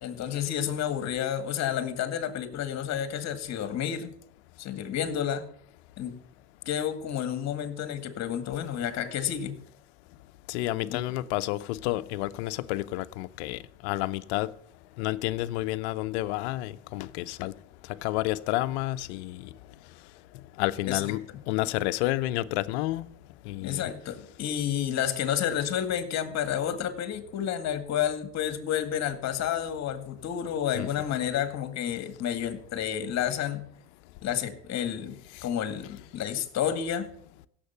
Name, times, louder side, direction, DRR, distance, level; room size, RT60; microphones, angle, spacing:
voice 1, 0.0-4.1 4.6-5.4 6.0-6.2 6.7-9.6 10.8-11.0 20.9-21.0 23.6-33.7 34.2-37.1, left 9 dB, 55° left, 2.1 m, -30 dB
voice 2, 10.5-14.5 15.0-17.5 17.9-19.5 20.6-23.1 23.5-23.9 30.7-30.9 35.4-35.5, left 17 dB, 80° left, 0.8 m, -30 dB
16.5 x 7.5 x 5.8 m
supercardioid pair, 90°, 33 cm